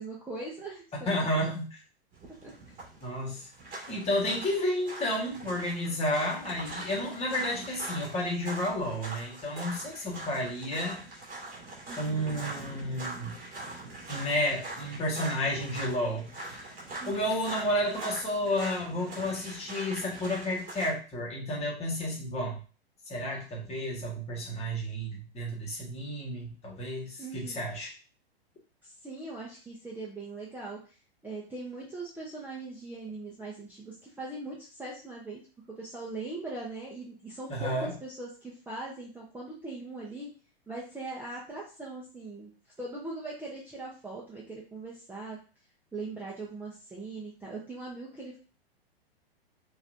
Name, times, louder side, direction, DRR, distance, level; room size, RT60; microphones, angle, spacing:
voice 1, 0.0-1.3 2.4-2.5 11.9-12.3 17.0-17.1 27.2-27.6 28.8-31.0 31.2-35.4 35.7-40.3 40.7-42.5 42.8-45.4 45.9-48.4, right 2 dB, 5° right, -5 dB, 0.9 m, -40 dB
voice 2, 1.1-1.7 3.0-3.5 3.9-11.0 12.0-13.4 14.1-16.6 17.0-22.6 23.1-27.9 37.5-37.9, equal, 20° left, -2 dB, 1.6 m, -31 dB
sound 1, 2.1-20.9, right 2 dB, 25° right, 2.2 m, -42 dB
5.7 x 2.8 x 2.7 m, 0.35 s
hypercardioid pair, 110°, 31 cm